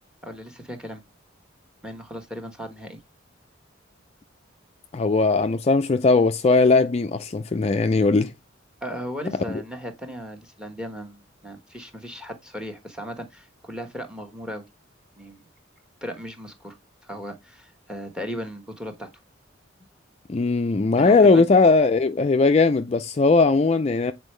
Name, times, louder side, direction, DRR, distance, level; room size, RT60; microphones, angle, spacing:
voice 1, 0.2-1.0 1.8-3.0 8.8-14.6 15.2-15.5 16.0-16.8 17.0-19.1 21.0-21.4, equal, 5° right, 1.3 m, -36 dB
voice 2, 4.9-8.3 20.3-24.1, left 3 dB, 30° left, 0.4 m, -19 dB
8.1 x 4.4 x 3.2 m
head